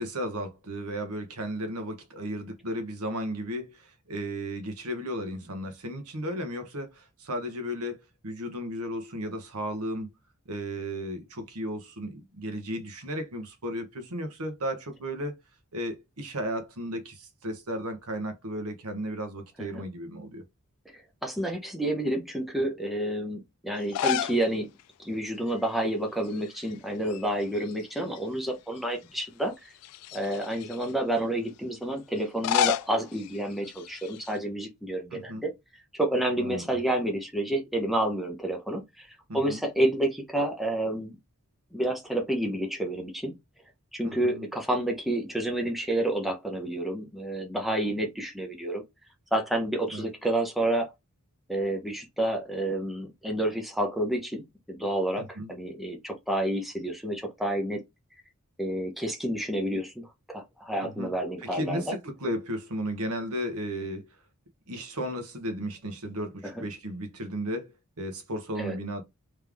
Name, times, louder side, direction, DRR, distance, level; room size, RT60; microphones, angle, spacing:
voice 1, 0.0-8.0 8.2-10.1 10.5-15.4 15.7-20.4 35.1-35.4 36.4-36.7 39.3-39.6 44.0-44.5 49.9-50.1 55.2-55.5 60.8-61.1 61.4-64.2 64.7-69.0, equal, 75° right, 1.1 m, -34 dB
voice 2, 20.9-24.7 25.0-29.7 30.1-35.5 35.9-39.1 39.3-41.2 41.7-43.3 43.9-48.8 49.3-50.9 51.5-57.8 58.6-61.9 66.4-66.7 68.6-68.8, right 1 dB, ahead, 0.9 m, -29 dB
sound 1, 23.8-24.4 24.8-24.9 26.2-26.7 27.0-28.2 28.8-28.9 29.8-30.9 32.2-34.4, left 9 dB, 90° left, 0.3 m, -31 dB
3.6 x 3.3 x 3.5 m
head